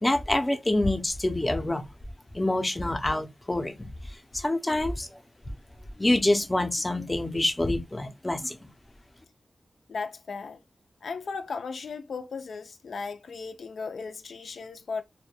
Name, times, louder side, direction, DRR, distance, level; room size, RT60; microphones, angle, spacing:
voice 1, 0.0-1.8 2.3-3.9 4.3-5.1 6.0-8.6, left 1 dB, 20° left, 0.5 m, -26 dB
voice 2, 9.9-10.6 11.0-15.0, left 4 dB, 80° left, 0.3 m, -36 dB
2.1 x 2.1 x 3.1 m
wide cardioid pair, 100°, 0 cm